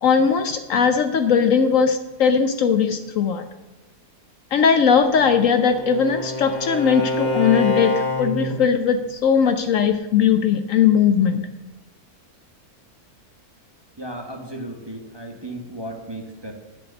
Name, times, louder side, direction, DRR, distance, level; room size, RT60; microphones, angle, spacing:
voice 1, 0.0-3.4 4.5-7.9 8.2-11.4, left 6 dB, 65° left, 8 dB, 1.0 m, -19 dB
Bowed string instrument, 5.0-8.6, left 2 dB, 30° left, 1.2 m, -26 dB
voice 2, 14.0-16.5, right 1 dB, 20° right, 2 dB, 1.2 m, -35 dB
10.5 x 5.2 x 8.0 m, 1.1 s
omnidirectional pair, 1.6 m